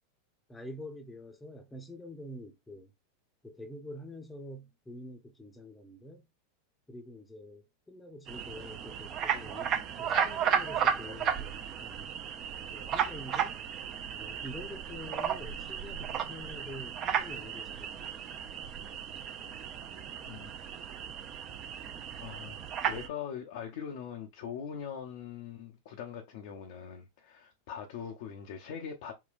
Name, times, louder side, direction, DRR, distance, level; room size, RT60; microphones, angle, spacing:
voice 1, 0.5-2.9 3.4-6.2 6.9-12.1 12.7-13.6 14.1-18.2, left 1 dB, 10° left, 0.7 m, -46 dB
sound 1, 8.3-23.1, right 8 dB, 40° right, 0.5 m, -34 dB
voice 2, 22.2-22.6 22.8-29.1, left 7 dB, 60° left, 0.6 m, -41 dB
3.8 x 2.2 x 2.5 m
hypercardioid pair, 90°, 0 cm